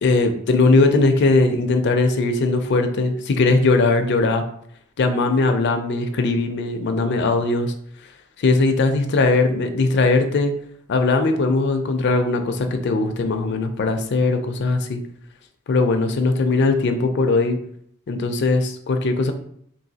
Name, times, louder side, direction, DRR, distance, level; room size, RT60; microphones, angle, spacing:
voice 1, 0.0-4.4 5.0-7.7 8.4-10.5 10.9-15.0 15.7-17.6 18.1-19.3, left 3 dB, 50° left, 6 dB, 0.4 m, -19 dB
3.8 x 2.7 x 2.7 m, 0.67 s
head